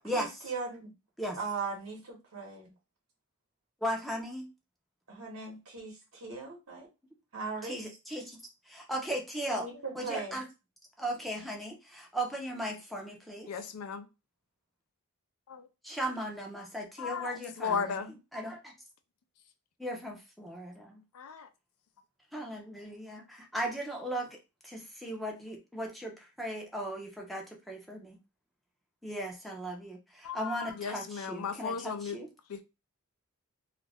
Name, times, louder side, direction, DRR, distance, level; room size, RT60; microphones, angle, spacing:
voice 1, 0.1-0.9 1.4-2.7 5.1-6.9 7.3-7.8 9.5-10.4, right 4 dB, 70° right, 1.0 m, -39 dB
voice 2, 3.8-4.5 7.6-8.4 8.7-9.7 9.9-10.4 11.0-13.5 15.8-18.0 18.3-18.7 19.8-21.0 22.3-24.4 24.6-28.2 29.0-32.3, right 1 dB, ahead, 0.6 m, -37 dB
voice 3, 13.5-14.1 15.5-15.7 17.0-18.1 21.1-21.5 30.2-32.2 32.5-32.6, left 6 dB, 85° left, 0.4 m, -36 dB
2.4 x 2.1 x 3.3 m
head